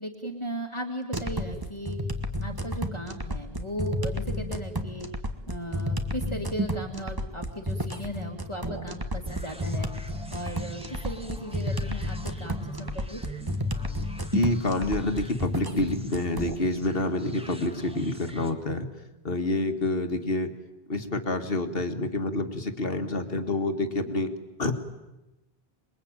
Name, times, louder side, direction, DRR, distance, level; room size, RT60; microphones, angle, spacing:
voice 1, 0.0-2.0 2.4-5.1 5.5-9.9 10.3-13.2, equal, 30° left, 0 dB, 2.3 m, -36 dB
sound 1, 1.1-16.5, equal, 20° right, 1.7 m, -32 dB
sound 2, 9.2-18.5, right 2 dB, 5° right, 2.0 m, -45 dB
voice 2, 14.3-18.9 19.2-20.5 20.9-24.3 24.6-24.7, left 2 dB, 65° left, 6 dB, 2.2 m, -27 dB
27.0 x 22.0 x 9.1 m, 0.98 s
omnidirectional pair, 1.0 m